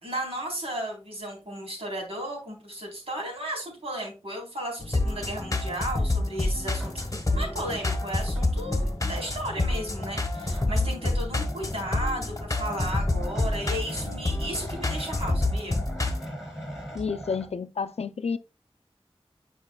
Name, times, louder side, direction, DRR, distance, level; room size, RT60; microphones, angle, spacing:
voice 1, 0.0-15.8, right 1 dB, 70° right, 3.6 m, -34 dB
sound 1, 4.8-16.3, left 2 dB, 35° left, 1.1 m, -28 dB
sound 2, 6.7-17.5, equal, 5° right, 4.0 m, -41 dB
voice 2, 16.9-18.4, left 5 dB, 85° left, 0.4 m, -30 dB
9.6 x 5.0 x 2.2 m
wide cardioid pair, 55°, 10 cm